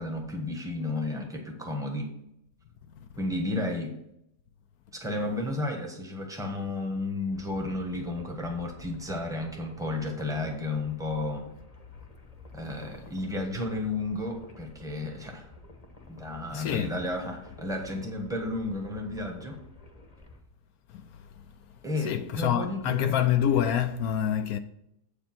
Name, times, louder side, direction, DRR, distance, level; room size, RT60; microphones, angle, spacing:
voice 1, 0.0-2.1 3.2-4.0 4.9-11.5 12.5-15.5 16.1-19.6 21.8-23.2, left 2 dB, ahead, 1.1 m, -32 dB
sound 1, 7.3-20.4, left 2 dB, 30° left, 0.9 m, -50 dB
voice 2, 16.5-17.0 20.9-21.2 22.0-24.6, left 10 dB, 70° left, 1.0 m, -27 dB
8.0 x 5.1 x 6.0 m
omnidirectional pair, 1.8 m